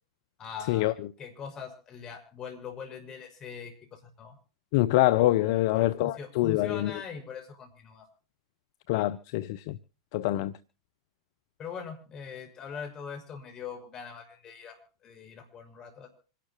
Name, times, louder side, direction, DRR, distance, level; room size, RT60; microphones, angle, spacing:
voice 1, 0.4-4.3 5.4-8.1 11.6-16.1, left 6 dB, 30° left, 5.6 m, -42 dB
voice 2, 4.7-6.9 8.9-9.8 10.1-10.5, left 16 dB, 55° left, 0.6 m, -25 dB
26.0 x 12.0 x 3.0 m
hypercardioid pair, 100°, 2 cm